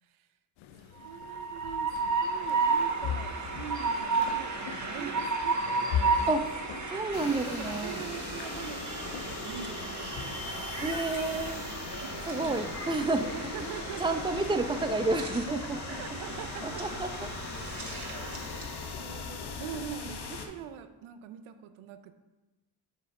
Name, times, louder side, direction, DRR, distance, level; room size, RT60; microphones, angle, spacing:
sound 1, 0.6-19.7, left 8 dB, 80° left, 0.6 m, -43 dB
voice 1, 0.8-1.9 2.2-6.2 7.2-11.0 12.0-12.7 13.3-14.4 15.5-17.0 17.9-18.7 19.0-22.1, right 9 dB, 90° right, 10 dB, 0.6 m, -44 dB
Train, 1.0-18.8, right 4 dB, 35° right, 1.5 m, -34 dB
voice 2, 6.9-8.0 10.8-11.7 12.3-13.3 13.6-13.7 14.0-15.6 16.6-17.3, right 3 dB, 10° right, 8 dB, 0.6 m, -30 dB
sound 2, 7.1-20.5, left 4 dB, 55° left, 1.1 m, -41 dB
5.5 x 4.8 x 6.4 m, 1.1 s
supercardioid pair, 55°, 47 cm